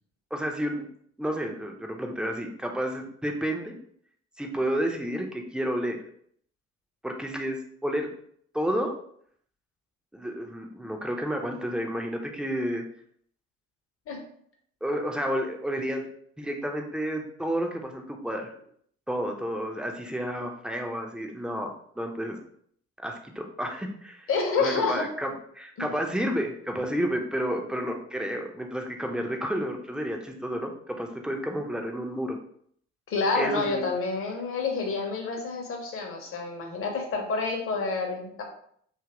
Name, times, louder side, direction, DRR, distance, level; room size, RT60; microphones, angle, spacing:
voice 1, 0.3-0.9 1.2-3.7 4.4-6.0 7.0-8.1 8.5-8.9 10.1-12.8 14.8-16.0 16.4-18.5 19.1-22.4 23.0-24.3 24.6-32.4 33.3-33.9, equal, ahead, 3 dB, 0.5 m, -31 dB
voice 2, 24.3-25.0 25.8-25.9 33.1-38.4, left 4 dB, 40° left, 1 dB, 0.8 m, -28 dB
2.8 x 2.5 x 2.8 m, 0.63 s
figure-of-eight pair, 50°, 35 cm